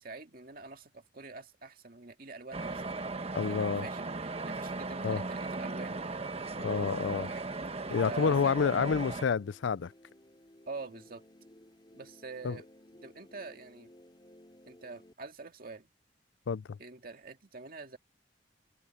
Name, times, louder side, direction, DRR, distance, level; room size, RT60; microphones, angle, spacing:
voice 1, 0.0-2.9 3.5-4.1 4.4-6.0 7.2-7.5 8.0-8.5 10.7-11.2 11.9-12.7 12.9-13.9 14.7-15.9 16.8-18.0, right 3 dB, 50° right, 2.1 m, -45 dB
sound 1, 2.5-9.2, right 3 dB, 35° right, 1.1 m, -37 dB
voice 2, 3.3-3.9 5.0-5.2 6.6-7.3 7.9-9.9 12.4-12.6 16.5-16.8, left 6 dB, 90° left, 0.4 m, -29 dB
sound 2, 6.4-15.1, left 1 dB, 25° left, 3.5 m, -59 dB
head